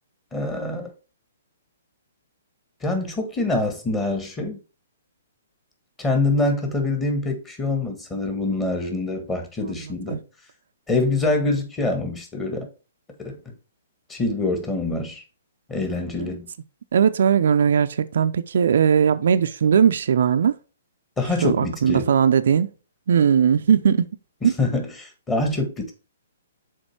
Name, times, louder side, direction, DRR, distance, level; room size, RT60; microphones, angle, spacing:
voice 1, 0.3-0.9 2.8-4.6 6.0-10.2 10.9-12.7 13.2-13.4 14.1-15.2 15.7-16.5 21.2-22.1 24.4-25.9, left 2 dB, 15° left, 1.7 m, -25 dB
voice 2, 16.9-20.6 21.4-22.7 23.1-24.1 24.4-24.5, right 7 dB, 60° right, 0.4 m, -19 dB
6.3 x 4.3 x 4.5 m
figure-of-eight pair, 125°, 0 cm